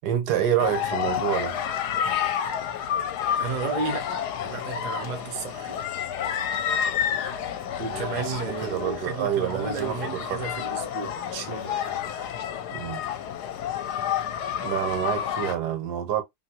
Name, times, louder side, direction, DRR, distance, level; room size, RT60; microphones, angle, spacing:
voice 1, 0.0-1.6 7.9-10.4 12.7-13.0 14.6-16.2, right 9 dB, 75° right, 1.2 m, -28 dB
sound 1, 0.6-15.5, left 9 dB, 75° left, 1.1 m, -30 dB
voice 2, 2.7-4.1 4.4-5.9 7.8-11.9, right 5 dB, 50° right, 0.5 m, -33 dB
2.8 x 2.6 x 2.8 m
omnidirectional pair, 1.8 m